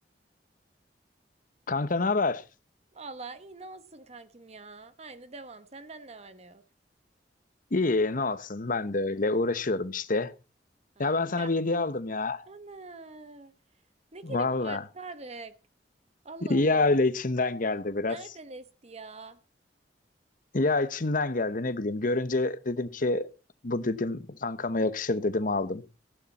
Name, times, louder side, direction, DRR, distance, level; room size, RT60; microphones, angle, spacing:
voice 1, 1.7-2.4 7.7-10.3 11.0-12.4 14.2-14.8 16.5-18.2 20.5-23.3 23.6-25.8, left 2 dB, 50° left, 1.0 m, -27 dB
voice 2, 2.9-6.6 11.0-11.5 12.5-13.5 14.1-15.5 16.2-17.0 18.1-19.4, right 3 dB, 40° right, 1.1 m, -44 dB
14.5 x 11.5 x 4.2 m
head